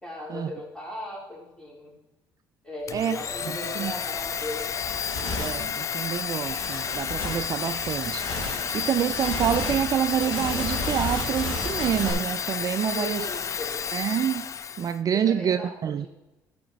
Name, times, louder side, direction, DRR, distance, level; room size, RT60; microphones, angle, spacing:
voice 1, 0.0-1.9 2.6-4.7 12.8-13.9 15.1-16.1, left 1 dB, 10° left, 3.5 m, -37 dB
Domestic sounds home sounds, 2.9-15.0, left 7 dB, 35° left, 0.4 m, -31 dB
sound 1, 3.3-3.4 3.9-12.1, left 1 dB, 60° left, 3.5 m, -34 dB
voice 2, 3.5-3.9 5.4-13.3 13.9-14.5 14.8-16.1, right 9 dB, 45° right, 0.4 m, -27 dB
12.0 x 5.0 x 4.6 m
supercardioid pair, 80°, 9 cm